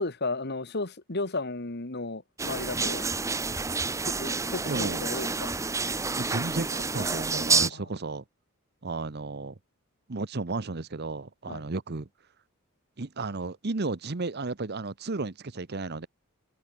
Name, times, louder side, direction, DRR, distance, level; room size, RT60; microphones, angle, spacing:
voice 1, 0.0-3.1 4.0-5.5 7.7-7.9 11.5-11.6, left 2 dB, 50° left, 1.8 m, -34 dB
sound 1, 2.4-7.7, right 4 dB, 15° right, 0.8 m, -29 dB
voice 2, 4.7-5.1 6.2-8.2 8.8-9.5 10.1-12.1 13.0-16.1, right 3 dB, 45° right, 0.9 m, -33 dB
head